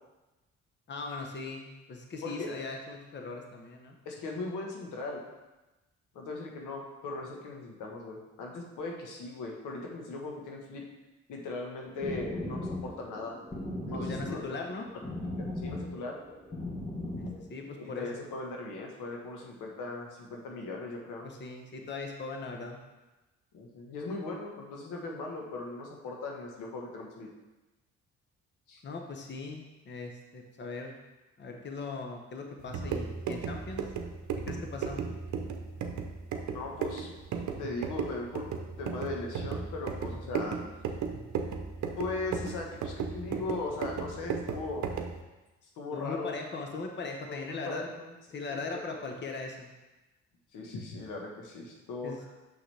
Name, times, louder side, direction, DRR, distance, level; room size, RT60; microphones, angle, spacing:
voice 1, 0.9-4.0 13.9-14.9 17.2-18.2 21.2-22.8 28.8-31.0 31.4-33.8 34.5-35.0 45.9-47.9 48.3-49.7 52.0-52.2, left 3 dB, 35° left, 2 dB, 1.0 m, -39 dB
voice 2, 4.0-5.2 6.1-10.8 11.3-13.4 13.8-14.6 15.2-16.2 17.8-21.3 23.5-27.3 28.7-28.8 36.4-37.1 37.6-38.4 38.8-40.6 42.0-44.9 45.8-46.3 47.3-48.8 50.5-52.1, left 3 dB, 90° left, 0 dB, 1.3 m, -39 dB
sound 1, 11.8-17.4, left 1 dB, 20° left, 1.5 m, -38 dB
sound 2, 32.6-45.2, right 6 dB, 70° right, 0.8 m, -36 dB
6.2 x 6.2 x 3.3 m, 1.1 s
cardioid pair, 90°, 30 cm